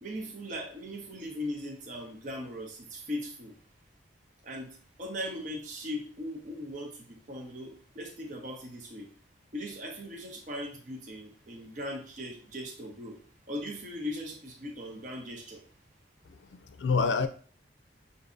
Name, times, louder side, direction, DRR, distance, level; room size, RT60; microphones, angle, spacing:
voice 1, 0.0-3.5 4.4-4.7 5.0-9.1 9.5-13.2 13.5-15.6, left 1 dB, 45° right, 0.8 m, -39 dB
voice 2, 16.3-17.3, left 4 dB, 80° left, 0.4 m, -28 dB
6.5 x 2.7 x 2.5 m
head